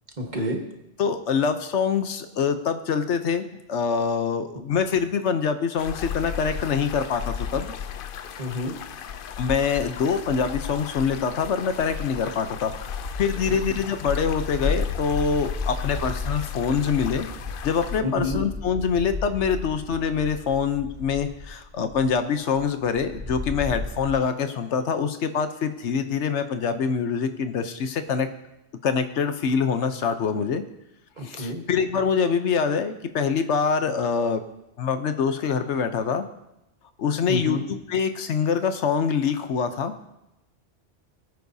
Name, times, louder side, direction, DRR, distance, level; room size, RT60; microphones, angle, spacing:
voice 1, 0.2-0.6 8.4-8.7 13.5-13.6 18.0-18.4 31.2-31.6 37.3-37.6, left 1 dB, 40° right, 2 dB, 1.6 m, -28 dB
voice 2, 1.0-7.7 9.4-17.3 17.6-28.3 28.8-30.6 31.2-34.4 34.8-36.3 37.0-39.9, left 6 dB, 75° left, 9 dB, 1.1 m, -25 dB
sound 1, 5.8-18.0, left 7 dB, 60° left, 0.6 m, -34 dB
sound 2, 11.7-12.3 12.6-24.1, left 2 dB, 15° right, 2.2 m, -36 dB
21.0 x 9.3 x 2.7 m, 0.89 s
omnidirectional pair, 1.2 m